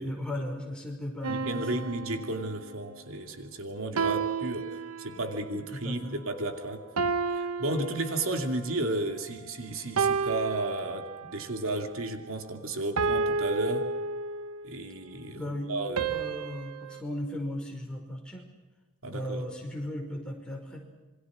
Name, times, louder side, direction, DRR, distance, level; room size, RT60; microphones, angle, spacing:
voice 1, 0.0-1.9 5.7-6.2 15.3-15.7 16.1-18.5 19.1-20.8, left 1 dB, 5° left, 0 dB, 5.4 m, -36 dB
sound 1, 1.2-2.9 4.0-5.5 7.0-8.6 10.0-11.5 13.0-14.7 16.0-17.0, right 4 dB, 85° right, 1.1 m, -31 dB
voice 2, 1.3-6.8 7.3-13.9 14.6-15.4 15.7-16.1 19.0-19.4, right 2 dB, 70° right, 5 dB, 2.7 m, -33 dB
27.0 x 24.5 x 6.3 m, 1.2 s
head